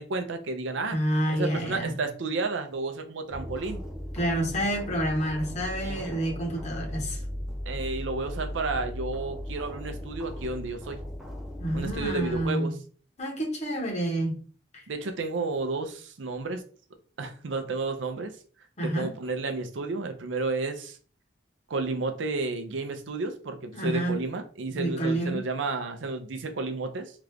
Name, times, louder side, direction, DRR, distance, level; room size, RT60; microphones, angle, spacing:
voice 1, 0.0-1.0 1.3-3.8 5.8-6.1 7.7-11.0 11.7-12.8 14.9-16.6 17.2-18.4 18.8-21.0 21.7-27.1, right 3 dB, 75° right, 0.5 m, -32 dB
voice 2, 0.9-1.9 4.1-7.2 11.6-12.7 13.2-14.3 14.7-14.8 18.8-19.1 23.7-24.2 24.7-25.5, right 1 dB, 35° left, 1.0 m, -28 dB
sound 1, 3.3-12.5, equal, 5° right, 0.6 m, -37 dB
2.9 x 2.4 x 3.4 m
head